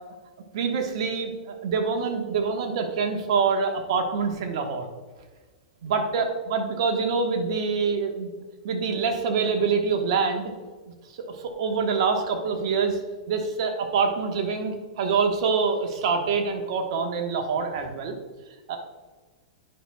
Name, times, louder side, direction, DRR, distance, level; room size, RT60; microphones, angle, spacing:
voice 1, 0.5-4.9 5.8-8.3 8.6-10.5 11.1-13.0 13.3-18.2 18.7-18.8, right 5 dB, 60° right, 4 dB, 1.2 m, -25 dB
9.9 x 6.0 x 2.2 m, 1.4 s
hypercardioid pair, 110°, 3 cm